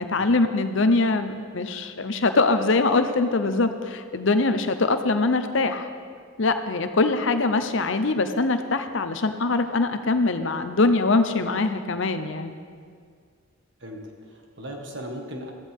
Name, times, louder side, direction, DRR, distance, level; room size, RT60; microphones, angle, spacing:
voice 1, 0.0-5.9 6.4-12.6, left 3 dB, 60° left, 9 dB, 0.8 m, -23 dB
voice 2, 13.8-15.5, equal, 60° right, 2 dB, 1.7 m, -37 dB
15.5 x 14.0 x 3.7 m, 2.1 s
head